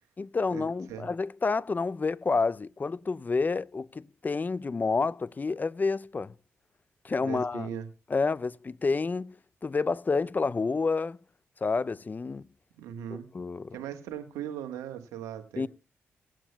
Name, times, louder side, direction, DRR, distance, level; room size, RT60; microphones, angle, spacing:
voice 1, 0.2-6.3 7.0-7.7 8.1-9.4 9.6-11.2 11.6-12.5 13.3-13.8 15.6-15.7, left 4 dB, 35° left, 0.4 m, -29 dB
voice 2, 7.2-7.9 12.8-13.3 13.7-15.7, right 10 dB, 85° right, 1.3 m, -38 dB
19.0 x 9.0 x 2.2 m
supercardioid pair, 45°, 5 cm